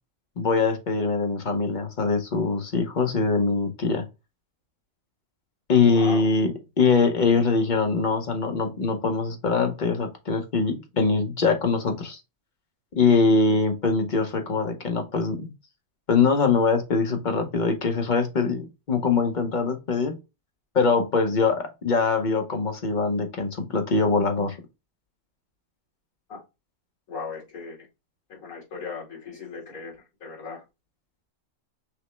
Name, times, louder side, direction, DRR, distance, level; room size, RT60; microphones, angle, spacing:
voice 1, 0.4-4.0 5.7-12.2 13.0-15.5 16.1-20.2 20.7-24.6, left 4 dB, 50° left, 0.6 m, -23 dB
voice 2, 5.8-6.3 26.3-26.4 27.1-27.8 28.3-30.6, left 4 dB, 65° left, 2.4 m, -37 dB
5.9 x 2.0 x 3.1 m
omnidirectional pair, 1.6 m